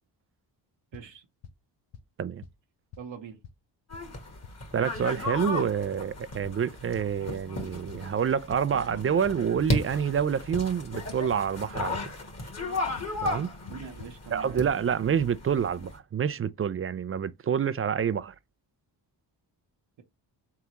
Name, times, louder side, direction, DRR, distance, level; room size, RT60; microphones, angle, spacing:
sound 1, 0.9-1.0 1.4-1.5 1.9-2.0 2.4-2.5 2.9-3.0 3.4-3.5 3.9-4.0 4.4-4.5 4.9-5.0 5.4-5.5 5.9-6.0 6.4-6.5 6.9-7.9 8.9-10.0 10.9-11.0 11.3-11.7 11.9-12.0 13.0-13.1 13.3-13.4 13.7-13.8 14.0-14.1, left 8 dB, 60° left, 0.7 m, -44 dB
voice 1, 0.9-1.3 3.0-3.4 13.7-14.6, right 6 dB, 70° right, 0.9 m, -42 dB
sound 2, 3.9-16.0, left 2 dB, 35° left, 1.5 m, -35 dB
voice 2, 4.7-12.0 13.2-13.5 14.3-18.3, right 7 dB, 30° right, 0.4 m, -27 dB
3.9 x 3.5 x 3.0 m
cardioid pair, 55°, 46 cm